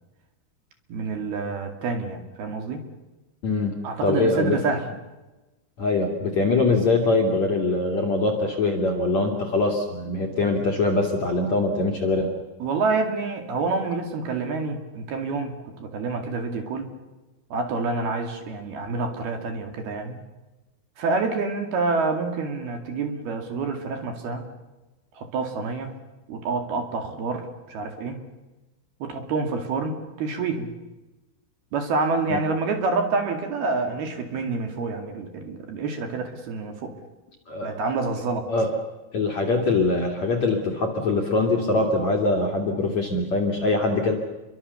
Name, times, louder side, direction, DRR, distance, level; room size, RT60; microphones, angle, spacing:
voice 1, 0.9-2.8 3.8-4.8 12.6-16.9 17.5-20.2 21.0-24.4 25.2-25.9 26.3-28.2 29.0-30.7 31.7-36.9 37.6-38.5, right 3 dB, 55° right, 5 dB, 3.9 m, -27 dB
voice 2, 3.4-3.7 4.0-4.6 5.8-12.3 32.3-32.4 37.5-37.8 38.5-38.8 39.1-44.1, left 2 dB, 45° left, 2 dB, 2.7 m, -23 dB
29.0 x 24.0 x 7.0 m, 1.1 s
omnidirectional pair, 5.9 m